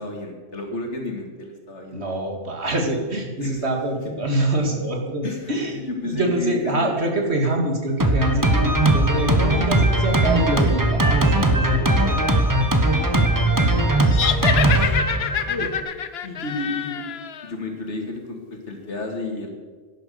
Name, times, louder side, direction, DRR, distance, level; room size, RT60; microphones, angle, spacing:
voice 1, 0.0-2.0 3.4-3.6 4.0-4.1 5.2-6.9 12.3-13.1 13.4-13.9 14.7-15.0 15.5-15.7 16.2-17.0 17.4-19.5, left 2 dB, 90° left, 2 dB, 2.6 m, -32 dB
voice 2, 1.9-5.8 6.0-12.2, right 2 dB, 70° right, 2 dB, 2.5 m, -25 dB
Drum kit, 8.0-15.8, right 1 dB, 20° right, 1.2 m, -19 dB
sound 1, 14.1-17.5, left 8 dB, 65° left, 0.9 m, -26 dB
12.0 x 10.5 x 6.9 m, 1.5 s
omnidirectional pair, 1.2 m